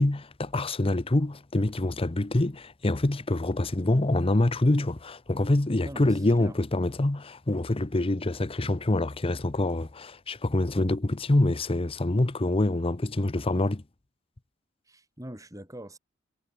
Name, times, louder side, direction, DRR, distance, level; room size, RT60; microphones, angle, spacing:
voice 1, 0.0-13.8, left 2 dB, 30° left, 0.8 m, -26 dB
voice 2, 5.8-6.6 14.9-16.0, right 1 dB, 15° right, 5.7 m, -43 dB
head